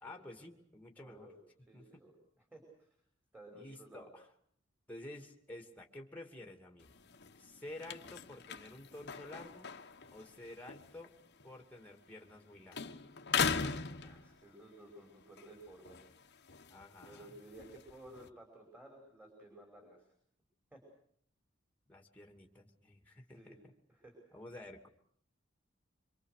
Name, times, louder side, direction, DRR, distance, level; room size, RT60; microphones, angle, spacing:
voice 1, 0.0-1.3 1.7-2.0 3.5-4.3 4.9-6.9 7.4-9.7 10.1-11.1 11.4-12.8 16.7-17.4 21.9-23.7 24.3-24.9, left 1 dB, 10° left, 3 dB, 2.7 m, -51 dB
voice 2, 1.0-1.4 1.7-2.1 2.5-2.9 3.3-4.1 14.0-16.1 17.0-20.1 20.7-20.8 23.4-23.6 23.9-24.2, right 1 dB, 10° right, 1 dB, 5.8 m, -55 dB
sound 1, 6.8-12.4 12.7-14.7 15.2-18.3, left 6 dB, 55° left, 1.4 m, -40 dB
26.5 x 25.0 x 6.7 m, 0.63 s
head